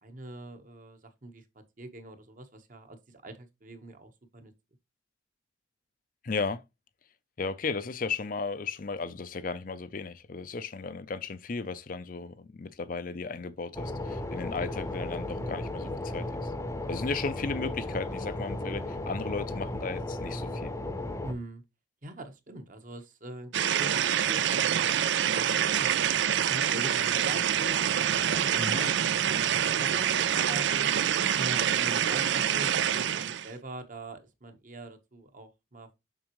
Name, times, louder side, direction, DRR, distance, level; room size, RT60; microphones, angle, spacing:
voice 1, 0.0-1.4 1.8-4.5 15.4-15.5 21.2-21.6 22.0-24.9 25.2-25.9 26.2-27.8 28.2-30.9 31.3-35.9, right 1 dB, 45° right, 1.2 m, -43 dB
voice 2, 6.2-6.6 7.4-16.5 16.9-20.7 28.5-28.9, left 4 dB, 45° left, 0.5 m, -35 dB
sound 1, 13.7-21.3, left 1 dB, 15° left, 0.8 m, -35 dB
sound 2, 23.5-33.5, right 9 dB, 65° right, 0.4 m, -26 dB
7.3 x 6.1 x 3.1 m
head